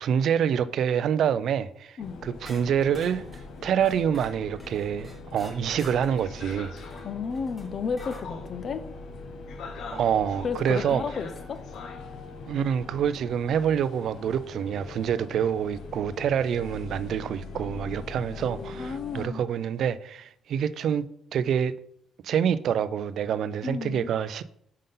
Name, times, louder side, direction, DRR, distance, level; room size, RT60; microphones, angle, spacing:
voice 1, 0.0-2.0 2.2-3.2 3.6-6.7 9.9-11.0 12.5-21.7 22.2-24.4, right 8 dB, 60° right, 0.3 m, -26 dB
sound 1, 2.0-19.2, left 4 dB, 70° left, 0.8 m, -41 dB
sound 2, 2.4-8.3 10.3-10.4 11.3-11.8, equal, 5° left, 1.1 m, -50 dB
voice 2, 7.0-8.8 10.4-11.6 18.8-19.4 23.6-24.1, left 5 dB, 40° left, 0.5 m, -32 dB
5.3 x 3.7 x 5.4 m
cardioid pair, 150°, 0 cm